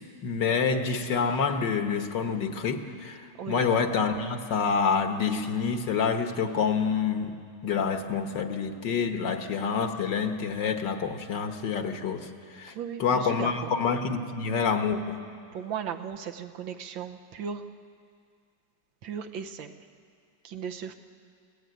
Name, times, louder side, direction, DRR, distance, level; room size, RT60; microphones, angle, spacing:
voice 1, 0.2-3.2 3.5-7.3 7.6-12.7 13.0-15.2, left 5 dB, 65° left, 6 dB, 1.9 m, -27 dB
voice 2, 12.7-13.7 15.5-17.6 19.0-19.7 20.4-20.9, right 7 dB, 75° right, 6 dB, 1.7 m, -36 dB
24.5 x 17.0 x 9.3 m, 2.3 s
omnidirectional pair, 2.1 m